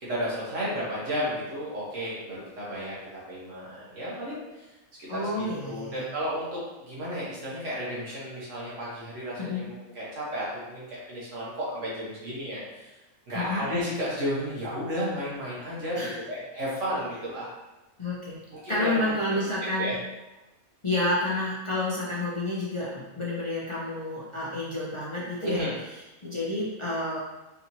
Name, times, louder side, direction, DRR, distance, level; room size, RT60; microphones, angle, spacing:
voice 1, 0.0-3.0 3.3-4.4 5.0-6.6 6.9-12.9 13.3-17.5 18.5-19.1 19.8-20.0 25.4-25.7, equal, 65° right, -7 dB, 1.5 m, -33 dB
voice 2, 5.1-6.0 9.4-9.7 13.3-13.6 16.0-16.1 18.0-18.4 18.7-19.9 20.8-25.6 26.2-27.2, left 1 dB, 50° left, -7 dB, 0.3 m, -29 dB
4.1 x 2.9 x 2.7 m, 1.0 s
omnidirectional pair, 1.5 m